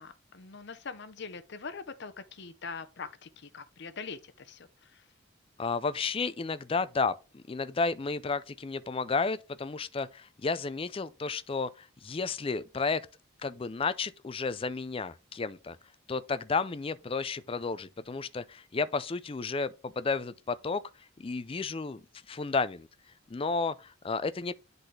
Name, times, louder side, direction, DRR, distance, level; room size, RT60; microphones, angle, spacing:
voice 1, 0.0-5.1, left 5 dB, 55° left, 0.8 m, -43 dB
voice 2, 5.6-13.0 13.4-15.8 16.1-20.8 21.2-22.0 22.3-22.9 23.3-24.5, left 4 dB, 25° left, 0.4 m, -32 dB
10.0 x 4.0 x 3.3 m
head